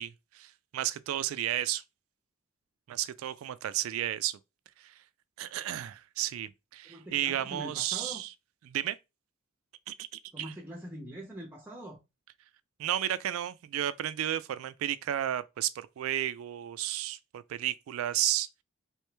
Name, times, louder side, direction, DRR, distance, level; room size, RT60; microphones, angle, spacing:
voice 1, 0.0-1.8 2.9-4.4 4.8-4.9 5.4-8.3 8.7-9.0 9.9-10.5 12.8-18.5, right 12 dB, 80° right, 0.3 m, -33 dB
voice 2, 6.8-8.2 10.3-12.0, right 1 dB, 10° right, 0.6 m, -43 dB
3.1 x 3.0 x 3.2 m
head